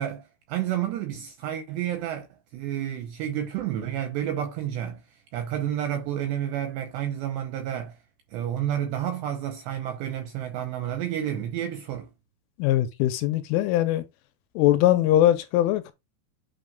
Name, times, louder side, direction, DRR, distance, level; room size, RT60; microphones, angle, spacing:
voice 1, 0.0-2.3 2.5-8.0 8.3-12.1, right 10 dB, 80° right, 2.5 m, -30 dB
voice 2, 12.6-14.0 14.6-15.9, left 13 dB, 85° left, 3.1 m, -21 dB
8.7 x 3.1 x 5.2 m
omnidirectional pair, 5.8 m